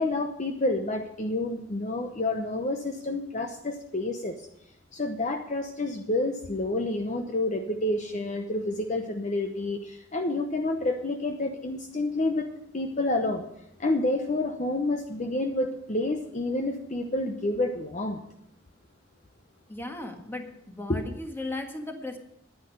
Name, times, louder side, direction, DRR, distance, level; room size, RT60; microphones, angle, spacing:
voice 1, 0.0-4.3 4.9-13.4 13.8-18.2 20.9-21.0, left 2 dB, 40° left, 4 dB, 0.9 m, -29 dB
voice 2, 19.7-22.2, left 2 dB, 10° left, 4 dB, 1.6 m, -36 dB
10.5 x 9.8 x 6.5 m, 0.77 s
head